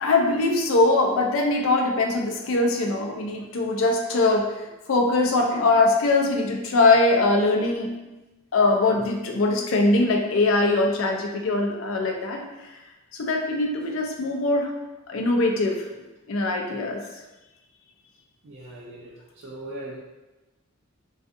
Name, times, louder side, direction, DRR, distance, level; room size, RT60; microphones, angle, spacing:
voice 1, 0.0-8.0 8.5-12.8 13.1-14.7 15.1-15.8 16.3-17.0, left 2 dB, 65° left, 2 dB, 0.4 m, -22 dB
voice 2, 18.4-20.0, right 1 dB, 60° right, -4 dB, 0.4 m, -39 dB
2.5 x 2.3 x 2.4 m, 1.1 s
head